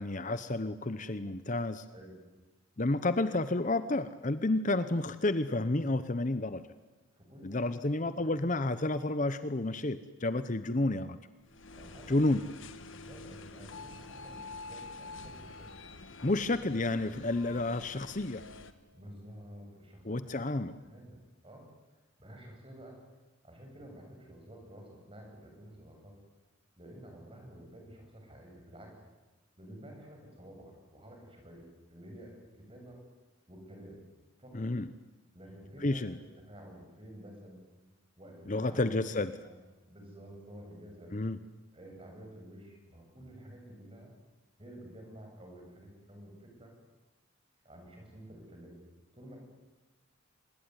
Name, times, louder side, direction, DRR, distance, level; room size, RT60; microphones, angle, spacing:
voice 1, 0.0-1.8 2.8-6.6 7.4-11.2 12.1-12.4 16.2-18.4 20.0-20.7 34.5-34.9 35.8-36.2 38.5-39.3 41.1-41.4, left 2 dB, 35° left, 13 dB, 0.8 m, -30 dB
voice 2, 7.2-7.7 8.2-8.3 11.7-12.2 13.0-15.7 16.3-16.4 18.9-21.2 21.4-23.0 23.4-26.1 26.8-28.9 29.6-33.0 33.5-34.0 34.4-34.7 35.3-37.6 38.2-39.0 39.3-41.1 41.7-44.1 44.6-46.7 47.6-48.8 49.1-49.4, right 1 dB, 25° right, 1 dB, 7.9 m, -51 dB
sound 1, 11.5-18.7, left 3 dB, 65° left, 1.6 m, -47 dB
26.0 x 20.5 x 9.7 m, 1.2 s
head